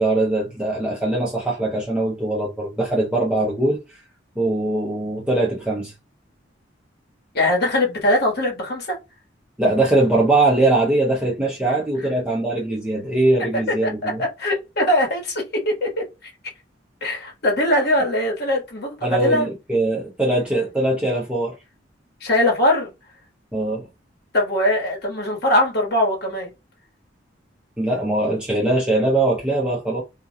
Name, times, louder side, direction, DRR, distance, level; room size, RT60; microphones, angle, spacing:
voice 1, 0.0-3.8 4.4-5.9 9.6-14.2 19.0-21.6 23.5-23.9 27.8-30.0, right 2 dB, 5° right, 0.6 m, -21 dB
voice 2, 7.3-9.0 13.8-16.3 17.0-19.5 22.2-22.9 24.3-26.5, left 1 dB, 60° left, 1.2 m, -21 dB
2.4 x 2.2 x 2.7 m
head